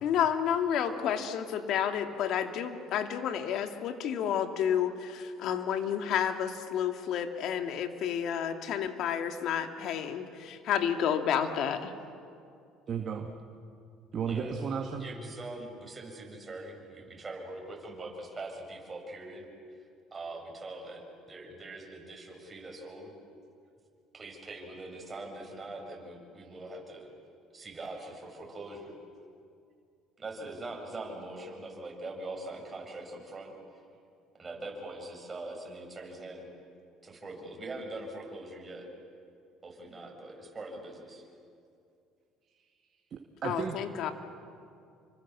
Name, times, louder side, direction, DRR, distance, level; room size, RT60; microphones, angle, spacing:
voice 1, 0.0-11.9 43.4-44.1, left 8 dB, 65° left, 6 dB, 2.3 m, -30 dB
voice 2, 12.9-13.3 14.1-15.1 26.4-26.5 43.1-43.8, right 6 dB, 50° right, 3 dB, 2.1 m, -34 dB
voice 3, 15.0-19.5 20.1-21.0 21.3-23.1 24.1-27.1 27.5-29.0 30.2-33.5 34.4-36.5 37.0-38.9 39.6-41.2, right 2 dB, 25° right, 1 dB, 7.6 m, -42 dB
29.0 x 25.0 x 7.4 m, 2.4 s
supercardioid pair, 85°, 0 cm